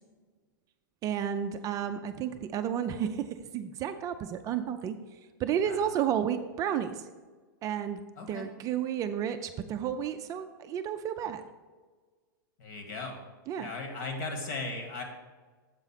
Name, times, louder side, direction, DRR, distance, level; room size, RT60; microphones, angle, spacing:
voice 1, 1.0-5.0 5.4-7.0 7.6-8.0 8.3-11.4 13.5-13.7, right 9 dB, 30° right, 8 dB, 0.4 m, -32 dB
voice 2, 8.2-8.5 12.6-13.2 13.6-15.0, left 3 dB, 55° left, 4 dB, 1.6 m, -37 dB
7.4 x 3.9 x 5.7 m, 1.4 s
hypercardioid pair, 120°, 12 cm